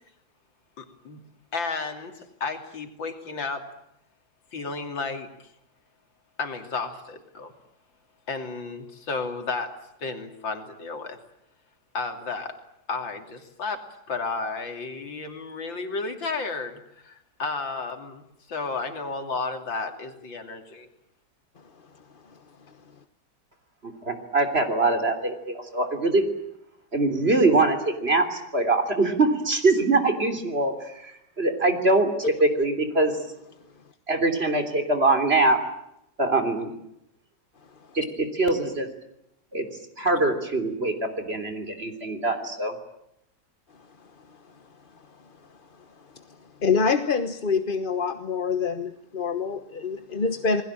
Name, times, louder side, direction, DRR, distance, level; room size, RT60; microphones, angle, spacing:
voice 1, 0.8-1.2 1.5-3.7 4.5-5.3 6.4-7.5 8.3-9.7 10.0-11.2 11.9-12.6 12.9-13.8 14.1-20.9, left 4 dB, 85° left, 6 dB, 3.6 m, -32 dB
voice 2, 23.8-26.3 26.9-32.1 32.4-33.2 34.1-35.6 36.2-36.7 37.9-38.9 39.5-39.7 40.0-42.7, right 2 dB, 30° right, 7 dB, 3.6 m, -23 dB
voice 3, 44.0-44.4 44.9-45.3 45.7-50.6, left 5 dB, 35° left, 9 dB, 1.1 m, -27 dB
28.5 x 20.5 x 8.9 m, 0.80 s
omnidirectional pair, 2.0 m